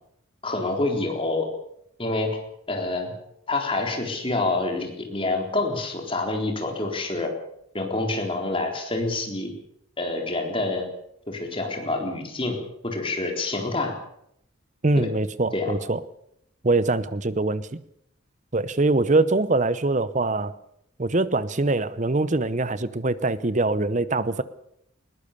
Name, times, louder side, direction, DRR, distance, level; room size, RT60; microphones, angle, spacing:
voice 1, 0.4-1.5 2.0-2.3 2.7-3.1 3.5-7.3 7.7-9.5 10.0-10.8 11.3-12.6 12.8-14.0 15.0-15.1 15.5-15.7, left 2 dB, 25° left, 2 dB, 4.0 m, -27 dB
voice 2, 14.8-16.0 16.6-17.8 18.5-20.5 21.0-24.4, right 2 dB, 35° right, 15 dB, 0.8 m, -23 dB
21.0 x 19.5 x 6.8 m, 0.73 s
head